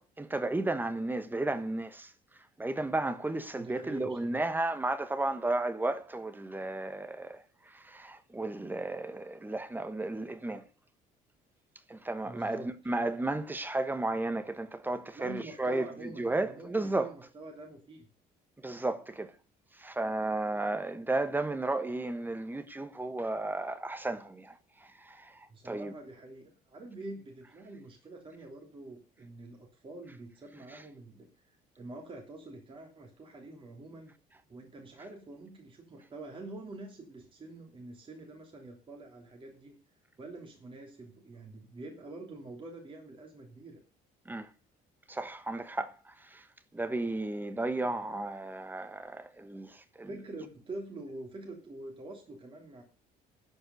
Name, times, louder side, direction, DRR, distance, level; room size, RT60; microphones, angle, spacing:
voice 1, 0.0-2.1 2.6-7.4 7.7-10.6 11.9-17.1 18.6-19.3 19.8-24.5 25.0-25.4 25.6-25.9 44.3-44.5 45.1-46.4 46.7-50.1, right 2 dB, 10° right, 1.3 m, -33 dB
voice 2, 3.5-4.4 12.2-12.7 13.1-13.2 15.1-18.1 25.5-34.1 34.5-39.8 40.2-43.8 50.1-52.8, right 2 dB, 30° right, 3.2 m, -46 dB
13.0 x 5.4 x 7.9 m
cardioid pair, 110°, 17 cm